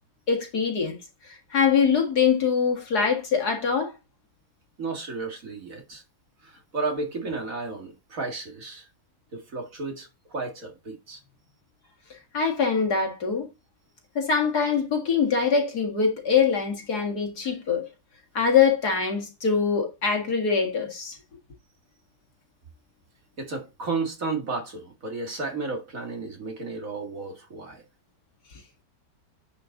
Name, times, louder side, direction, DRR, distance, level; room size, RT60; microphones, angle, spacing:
voice 1, 0.3-1.0 1.3-3.9 12.3-13.5 14.2-17.8 18.3-21.2, left 6 dB, 60° left, 2.4 m, -23 dB
voice 2, 4.8-6.0 6.4-8.9 9.3-11.2 23.4-27.8, right 3 dB, 50° right, 2.3 m, -33 dB
9.9 x 5.3 x 3.8 m
omnidirectional pair, 1.9 m